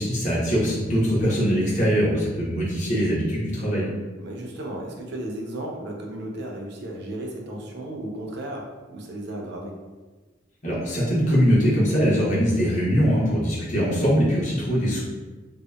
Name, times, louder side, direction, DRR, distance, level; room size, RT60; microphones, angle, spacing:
voice 1, 0.0-3.9 10.6-15.0, equal, 40° left, -7 dB, 0.8 m, -22 dB
voice 2, 4.2-9.8, right 1 dB, 60° right, 0 dB, 0.4 m, -34 dB
2.7 x 2.0 x 2.2 m, 1.3 s
head